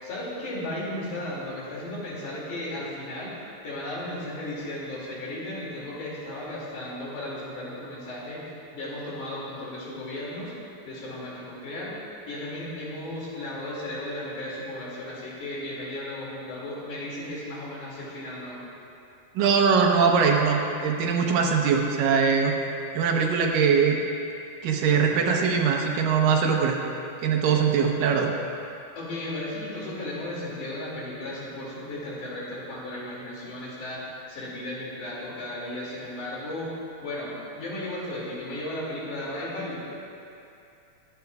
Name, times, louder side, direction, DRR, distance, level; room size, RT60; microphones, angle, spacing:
voice 1, 0.0-3.4 3.6-10.5 10.9-12.0 12.3-18.6 27.5-27.8 29.0-34.0 34.3-36.7 37.0-39.8, left 1 dB, 70° left, -6 dB, 4.0 m, -35 dB
voice 2, 19.4-22.5 22.9-24.0 24.6-26.8 27.2-28.3, right 6 dB, 85° right, 1 dB, 2.7 m, -22 dB
23.0 x 9.2 x 2.4 m, 2.7 s
omnidirectional pair, 3.8 m